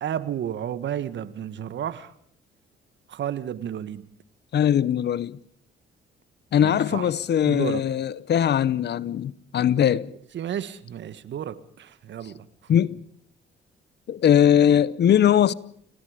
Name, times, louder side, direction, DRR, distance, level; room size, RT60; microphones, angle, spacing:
voice 1, 0.0-2.1 3.1-4.1 6.6-7.1 7.5-7.8 10.3-12.5, right 10 dB, 65° right, 1.7 m, -32 dB
voice 2, 4.5-5.4 6.5-10.1 12.7-13.0 14.1-15.5, left 9 dB, 60° left, 1.0 m, -20 dB
30.0 x 19.0 x 5.1 m
cardioid pair, 90°, 20 cm